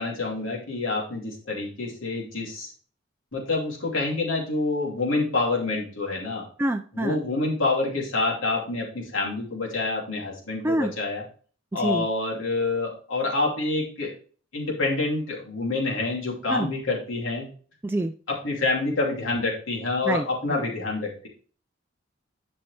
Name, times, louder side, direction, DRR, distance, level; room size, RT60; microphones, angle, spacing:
voice 1, 0.0-2.7 3.3-6.5 6.9-11.2 11.7-14.1 14.5-17.5 18.3-21.3, left 3 dB, 90° left, -2 dB, 2.9 m, -27 dB
voice 2, 6.6-7.2 10.6-10.9 11.7-12.1 16.5-16.7 17.8-18.1 20.1-20.6, right 1 dB, 10° right, 4 dB, 0.4 m, -26 dB
11.0 x 5.5 x 3.3 m, 0.41 s
head